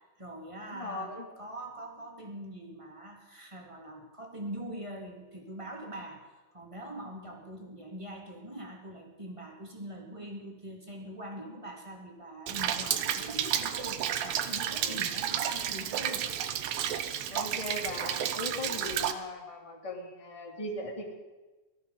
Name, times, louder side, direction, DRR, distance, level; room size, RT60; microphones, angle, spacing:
voice 1, 0.0-1.1 1.4-6.2 6.5-16.3, right 1 dB, 10° right, 0 dB, 1.6 m, -43 dB
voice 2, 0.6-1.3 14.8-15.0 17.3-21.1, left 2 dB, 10° left, 0 dB, 2.0 m, -39 dB
Rain, 12.5-19.1, right 10 dB, 80° right, 1.3 m, -32 dB
18.0 x 13.0 x 5.4 m, 1.2 s
omnidirectional pair, 3.7 m